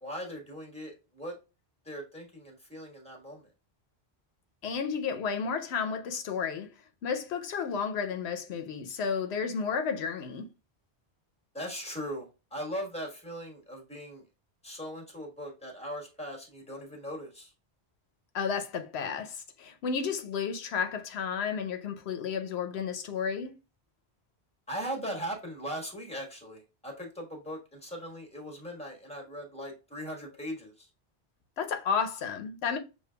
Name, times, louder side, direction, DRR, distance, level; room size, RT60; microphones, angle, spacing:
voice 1, 0.0-1.3 1.8-3.4 11.5-14.2 14.6-17.5 24.7-30.9, equal, 5° left, 1.3 m, -39 dB
voice 2, 4.6-6.7 7.0-10.5 18.3-23.5 31.6-32.8, left 6 dB, 85° left, 0.8 m, -32 dB
6.6 x 2.5 x 2.2 m
omnidirectional pair, 1.1 m